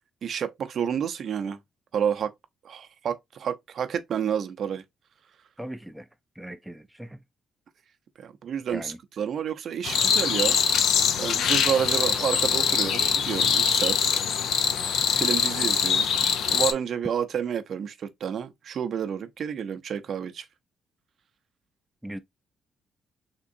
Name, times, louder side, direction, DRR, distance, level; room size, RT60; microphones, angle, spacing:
voice 1, 0.2-1.6 1.9-2.3 2.6-4.8 8.2-10.6 11.2-14.1 15.1-16.1 16.5-20.5, right 8 dB, 60° right, 0.5 m, -30 dB
voice 2, 5.6-6.1 6.4-7.2 8.7-9.0 22.0-22.2, right 1 dB, 5° right, 0.4 m, -38 dB
sound 1, 9.8-16.7, left 7 dB, 75° left, 0.5 m, -23 dB
3.7 x 2.9 x 2.6 m
cardioid pair, 90°, 0 cm